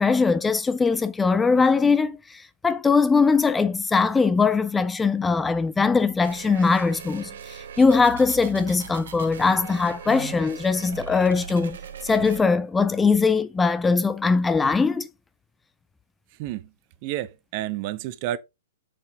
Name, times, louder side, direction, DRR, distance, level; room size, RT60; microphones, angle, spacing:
voice 1, 0.0-11.8 12.0-15.1, left 4 dB, 10° left, 0.4 m, -21 dB
sound 1, 6.2-12.4, right 7 dB, 60° right, 1.4 m, -40 dB
voice 2, 16.4-16.7 17.0-18.4, right 13 dB, 40° right, 0.9 m, -30 dB
7.5 x 6.8 x 3.6 m
figure-of-eight pair, 110°, 0 cm